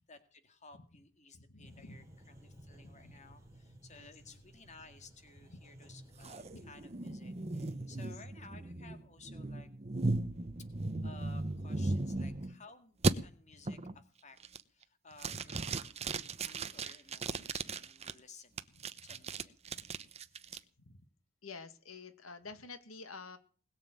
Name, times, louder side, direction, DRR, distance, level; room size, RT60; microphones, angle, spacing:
voice 1, 0.1-2.0 2.4-9.7 11.0-14.4 14.7-16.1 16.3-18.6 19.0-19.5, left 3 dB, 35° left, 9 dB, 2.0 m, -57 dB
voice 2, 1.3-2.1 2.5-3.2 3.9-4.2 5.5-5.6 6.5-6.7 7.9-8.2 10.9-11.0 13.5-13.8 18.8-19.2 19.8-19.9 20.5-21.0 21.4-23.4, left 4 dB, 85° left, 10 dB, 1.8 m, -51 dB
sound 1, 1.6-6.9, right 1 dB, 15° right, 3.3 m, -57 dB
sound 2, 6.2-12.6 13.0-13.1 13.7-14.0 14.4-14.8 15.2-18.1 18.6-20.6, right 3 dB, 30° right, 0.9 m, -36 dB
21.0 x 7.3 x 9.1 m, 0.40 s
head